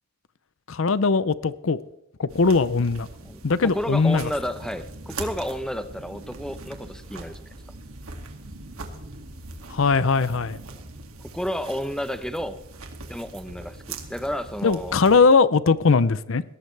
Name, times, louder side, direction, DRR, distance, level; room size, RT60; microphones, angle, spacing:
voice 1, 0.7-1.8 2.2-3.1 3.4-4.3 9.7-10.6 14.6-16.4, left 4 dB, 70° left, 0.6 m, -20 dB
sound 1, 2.3-15.2, right 3 dB, 90° right, 2.3 m, -41 dB
voice 2, 3.2-7.4 11.3-12.6 13.1-15.0, equal, 5° left, 0.8 m, -31 dB
21.5 x 17.5 x 3.4 m
head